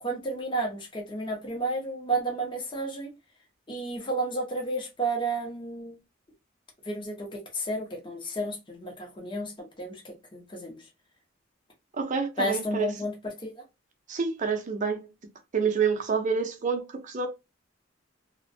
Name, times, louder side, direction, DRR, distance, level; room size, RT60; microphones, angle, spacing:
voice 1, 0.0-3.1 3.7-6.0 6.8-9.5 9.8-10.8 12.4-13.6, right 2 dB, 25° left, 0.7 m, -32 dB
voice 2, 12.0-12.9 14.1-15.1 15.5-17.3, right 5 dB, 40° right, 0.5 m, -28 dB
2.5 x 2.1 x 2.5 m
head